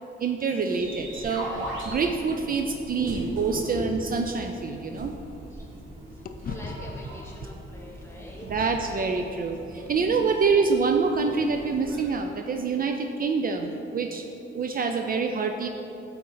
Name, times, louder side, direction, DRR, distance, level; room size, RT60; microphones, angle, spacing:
voice 1, 0.2-1.5 1.8-5.1 8.5-14.2 14.5-15.7, right 4 dB, 45° right, 4 dB, 0.4 m, -26 dB
sound 1, 0.7-12.1, equal, 85° right, 1.6 m, -39 dB
sound 2, 3.6-5.9 6.2-10.5, left 4 dB, 45° left, 0.4 m, -44 dB
voice 2, 6.1-8.8 9.7-9.9 14.6-14.7, equal, 10° left, -2 dB, 1.4 m, -46 dB
9.0 x 4.3 x 3.9 m, 2.9 s
cardioid pair, 105°, 20 cm